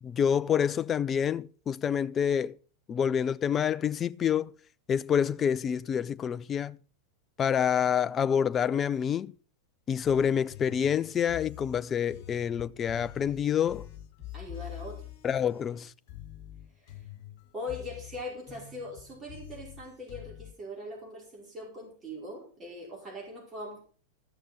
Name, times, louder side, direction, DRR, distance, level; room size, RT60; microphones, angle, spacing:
voice 1, 0.0-2.5 2.9-4.5 4.9-6.8 7.4-9.3 9.9-13.9 15.2-15.9, left 8 dB, 25° left, 0.5 m, -27 dB
sound 1, 10.0-20.5, left 12 dB, 40° left, 2.1 m, -46 dB
voice 2, 14.3-15.0 16.9-17.0 17.5-23.8, left 1 dB, 20° right, 4.8 m, -41 dB
14.0 x 6.7 x 5.9 m
figure-of-eight pair, 90°, 0 cm